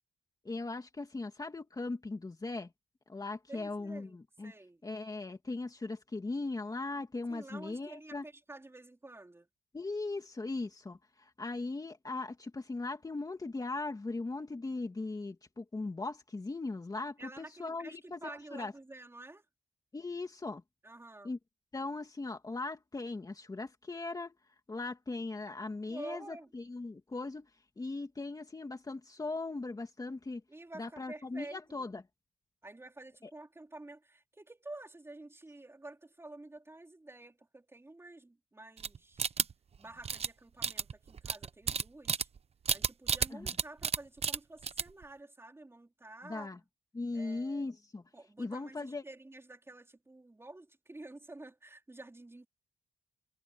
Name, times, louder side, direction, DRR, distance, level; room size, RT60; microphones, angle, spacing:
voice 1, 0.4-2.7 3.1-4.5 4.8-8.2 9.7-18.7 19.9-20.6 21.2-21.4 21.7-24.3 24.7-27.5 27.8-30.4 30.7-32.0 33.2-33.3 43.3-43.5 46.2-46.6 46.9-48.0 48.4-49.0, left 3 dB, 25° left, 2.7 m, -39 dB
voice 2, 3.5-4.2 4.4-4.8 7.3-9.5 17.2-19.5 20.8-21.3 25.9-26.5 30.5-31.9 32.6-39.4 39.8-42.3 42.7-46.5 47.1-47.6 48.1-52.5, right 2 dB, 15° right, 4.4 m, -50 dB
sound 1, 38.8-39.8 40.0-40.3 40.6-42.4 42.6-44.0 44.2-44.4 44.6-45.0, right 6 dB, 40° right, 0.9 m, -31 dB
cardioid pair, 105°, 15 cm